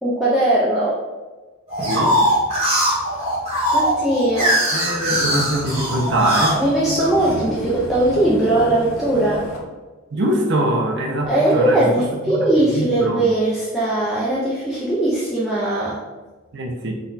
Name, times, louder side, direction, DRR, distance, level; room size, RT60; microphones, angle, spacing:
voice 1, 0.0-0.9 3.7-4.8 6.6-9.5 11.3-16.0, right 1 dB, ahead, -8 dB, 0.5 m, -19 dB
sound 1, 1.7-7.4 8.0-8.7, equal, 30° right, 1.4 m, -21 dB
voice 2, 1.8-2.3 4.7-6.6 10.1-11.9 12.3-13.2 16.5-17.0, right 1 dB, 55° right, 1 dB, 0.5 m, -22 dB
sound 2, 4.6-9.6, left 2 dB, 70° left, 0.8 m, -33 dB
4.0 x 2.3 x 3.9 m, 1.2 s
head